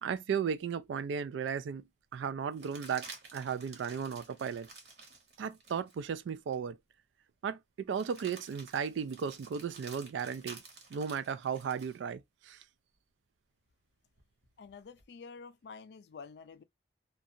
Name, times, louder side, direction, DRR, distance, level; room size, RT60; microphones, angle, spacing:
voice 1, 0.0-3.1 3.3-4.7 5.4-6.8 7.4-10.6 10.9-12.6, right 7 dB, 85° right, 0.3 m, -35 dB
sound 1, 0.9-1.0 2.5-6.0 6.5-6.6 7.9-12.0 14.2-15.0, right 4 dB, 60° right, 1.0 m, -52 dB
voice 2, 14.6-16.6, left 5 dB, 65° left, 0.4 m, -49 dB
2.5 x 2.3 x 2.6 m
head